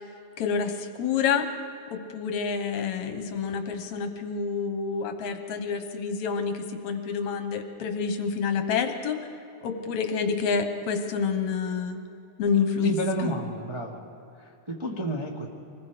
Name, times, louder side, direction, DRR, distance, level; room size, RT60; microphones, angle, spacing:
voice 1, 0.4-1.5 1.9-9.2 9.6-12.0 12.4-13.4, left 6 dB, 70° left, 6 dB, 2.3 m, -28 dB
voice 2, 12.8-14.0 14.4-15.5, right 1 dB, 15° right, -2 dB, 0.9 m, -31 dB
25.5 x 20.5 x 5.1 m, 2.8 s
omnidirectional pair, 3.6 m